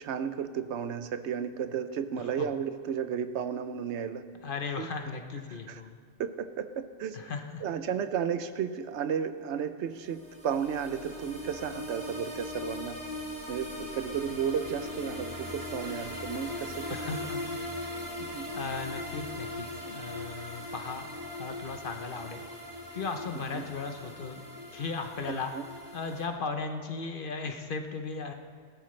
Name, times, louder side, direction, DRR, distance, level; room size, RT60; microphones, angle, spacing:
voice 1, 0.0-4.2 4.8-4.9 5.7-5.8 6.2-7.2 7.6-13.0 13.5-17.0 18.2-18.5 23.5-23.7 25.3-25.6, right 7 dB, 75° right, 11 dB, 0.9 m, -33 dB
voice 2, 2.2-2.5 4.4-6.0 7.1-7.6 16.9-17.6 18.5-21.1 21.4-22.4 22.9-24.4 24.7-25.5 25.9-28.3, left 4 dB, 50° left, 5 dB, 1.0 m, -36 dB
sound 1, 10.0-26.3, left 1 dB, 35° right, 3.2 m, -40 dB
19.0 x 12.5 x 3.2 m, 2.1 s
omnidirectional pair, 1.2 m